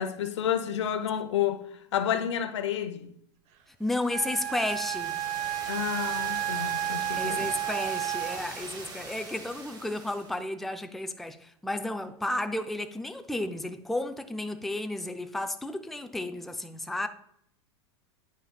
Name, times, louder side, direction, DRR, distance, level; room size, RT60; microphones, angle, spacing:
voice 1, 0.0-1.6 1.9-3.1 5.7-7.5, left 9 dB, 80° left, 0.7 m, -30 dB
voice 2, 3.8-5.2 7.2-17.1, left 1 dB, ahead, 0.4 m, -33 dB
sound 1, 3.9-10.4, right 3 dB, 30° right, 1.6 m, -42 dB
Wind instrument woodwind instrument, 4.1-8.7, right 13 dB, 50° right, 0.8 m, -32 dB
9.2 x 5.5 x 2.3 m
hypercardioid pair, 105°, 15 cm